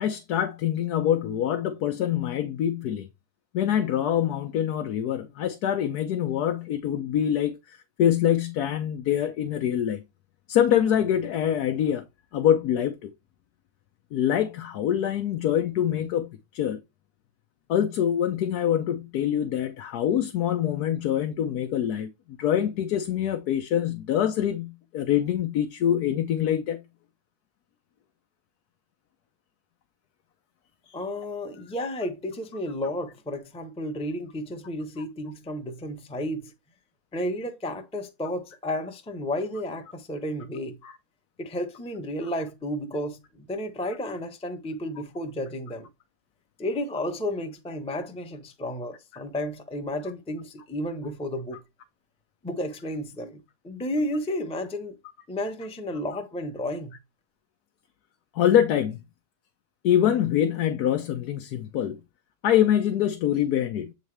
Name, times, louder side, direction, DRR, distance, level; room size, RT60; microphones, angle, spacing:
voice 1, 0.0-3.1 3.5-10.0 10.5-12.0 12.3-13.1 14.1-16.8 17.7-22.1 22.4-26.8 40.8-40.9 42.2-42.3 58.3-59.0 59.8-62.0 62.4-63.9, left 10 dB, 85° left, 1.3 m, -25 dB
voice 2, 30.9-36.5 37.1-40.8 41.4-45.9 46.6-51.6 52.4-55.0 55.3-57.0, left 1 dB, 5° left, 0.6 m, -32 dB
8.2 x 4.0 x 3.2 m
omnidirectional pair, 1.6 m